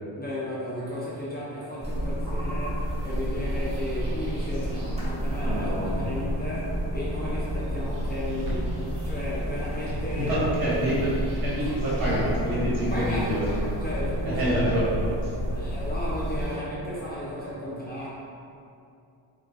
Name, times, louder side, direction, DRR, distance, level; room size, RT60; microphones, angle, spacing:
voice 1, 0.1-10.4 10.8-10.9 11.6-11.7 12.9-13.5 13.8-14.8 15.5-18.1, left 1 dB, 20° left, -8 dB, 0.5 m, -34 dB
sound 1, 1.8-16.6, equal, 15° right, 1.4 m, -30 dB
voice 2, 5.4-6.2 10.1-11.1 11.4-13.7 14.2-15.1, equal, 45° right, -8 dB, 1.4 m, -27 dB
sound 2, 8.2-13.6, equal, 85° right, 1.2 m, -39 dB
4.5 x 2.4 x 2.4 m, 2.6 s
cardioid pair, 85°, 48 cm